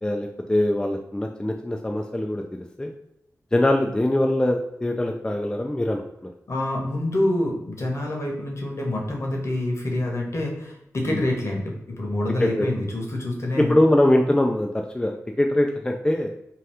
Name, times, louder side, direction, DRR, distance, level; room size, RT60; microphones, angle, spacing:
voice 1, 0.0-2.4 2.8-2.9 3.5-6.0 11.1-11.2 12.4-12.7 13.7-16.3, left 1 dB, 15° left, 2 dB, 0.3 m, -22 dB
voice 2, 6.5-13.7, left 1 dB, 55° left, 0 dB, 1.0 m, -26 dB
2.8 x 2.3 x 3.3 m, 0.83 s
cardioid pair, 55°, 6 cm